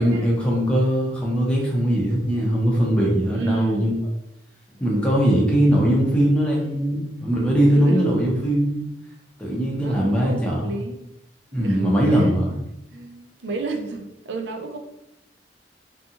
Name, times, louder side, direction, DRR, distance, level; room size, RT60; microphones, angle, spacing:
voice 1, 0.0-4.0 4.8-8.9 9.4-10.6 11.5-12.6, equal, 5° left, -4 dB, 0.6 m, -20 dB
voice 2, 3.3-3.9 7.5-8.4 9.8-11.1 11.5-12.6 12.9-14.8, right 3 dB, 85° right, 5 dB, 0.4 m, -31 dB
2.5 x 2.3 x 2.7 m, 0.85 s
head